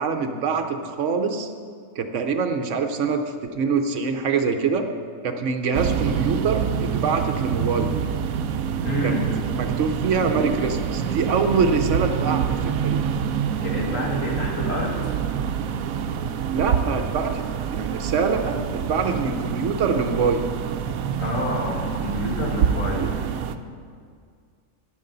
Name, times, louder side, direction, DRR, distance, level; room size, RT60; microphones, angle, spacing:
voice 1, 0.0-1.5 2.0-4.9 5.2-8.1 9.0-9.1 9.5-13.1 16.5-17.4 17.7-20.5, right 5 dB, 65° right, 6 dB, 1.0 m, -24 dB
sound 1, 5.7-23.6, right 8 dB, 90° right, 1.1 m, -26 dB
voice 2, 8.8-9.3 13.6-15.1 21.2-23.2, equal, 70° left, -2 dB, 2.3 m, -27 dB
13.0 x 10.5 x 3.9 m, 2.1 s
omnidirectional pair, 1.4 m